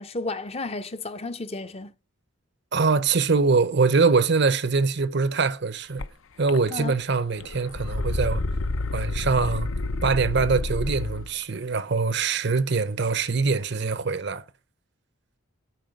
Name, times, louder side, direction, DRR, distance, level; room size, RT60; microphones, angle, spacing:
voice 1, 0.0-1.9 6.7-7.0, left 3 dB, 30° left, 0.6 m, -33 dB
voice 2, 2.7-6.0 6.4-8.4 8.9-9.7 10.0-14.4, right 4 dB, 55° right, 0.6 m, -23 dB
sound 1, 6.0-6.1 6.5-7.0 7.3-11.3, left 2 dB, 70° left, 0.7 m, -29 dB
9.1 x 5.3 x 6.6 m
head